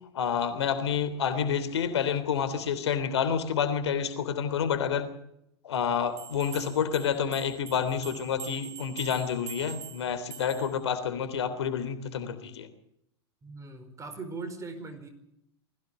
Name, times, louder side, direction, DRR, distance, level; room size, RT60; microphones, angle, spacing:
voice 1, 0.1-5.1 5.6-12.7, left 7 dB, 75° left, 11 dB, 3.3 m, -29 dB
sound 1, 6.2-10.8, right 9 dB, 80° right, 3.4 m, -45 dB
voice 2, 13.4-15.1, right 3 dB, 20° right, 8 dB, 4.8 m, -40 dB
20.5 x 16.5 x 8.3 m, 0.78 s
hypercardioid pair, 105°, 14 cm